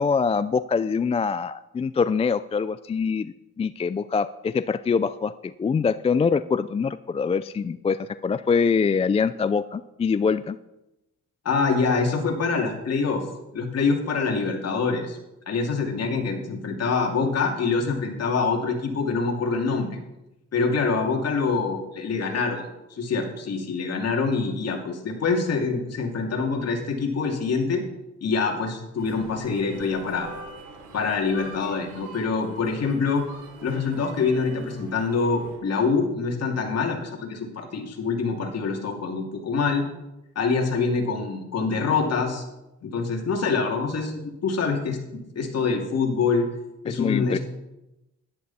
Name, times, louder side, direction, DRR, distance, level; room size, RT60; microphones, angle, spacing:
voice 1, 0.0-5.3 5.6-10.6 46.9-47.4, left 5 dB, 20° left, 14 dB, 0.3 m, -24 dB
voice 2, 11.4-13.2 13.5-15.2 15.5-20.0 20.5-22.6 22.9-27.8 28.2-30.3 30.9-33.2 33.6-39.8 40.3-42.4 42.8-46.5 46.8-47.4, left 4 dB, 55° left, 2 dB, 2.7 m, -25 dB
sound 1, 29.0-35.6, right 3 dB, 85° right, 3.1 m, -44 dB
13.0 x 11.0 x 4.2 m, 0.93 s
cardioid pair, 90°, 30 cm